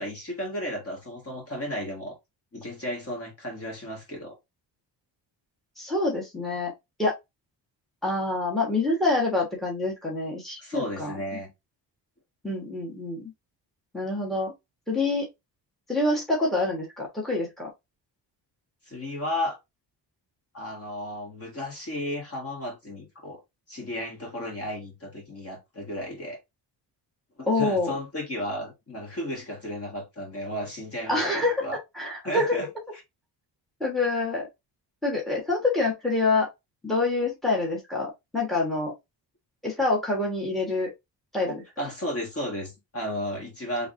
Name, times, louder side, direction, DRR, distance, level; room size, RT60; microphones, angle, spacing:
voice 1, 0.0-2.2 2.5-4.4 10.6-11.5 18.9-19.6 20.5-23.4 23.7-26.4 27.4-31.8 32.2-32.7 41.8-43.9, left 1 dB, 35° left, 1.6 m, -34 dB
voice 2, 5.8-6.7 7.0-7.1 8.0-11.1 12.4-13.3 13.9-14.5 14.9-15.3 15.9-17.7 27.5-27.9 31.1-31.7 31.9-32.6 33.8-34.5 35.0-36.5 36.8-38.9 39.6-40.9 41.3-41.6, left 2 dB, ahead, 1.4 m, -26 dB
4.6 x 3.3 x 2.6 m
wide cardioid pair, 175°, 42 cm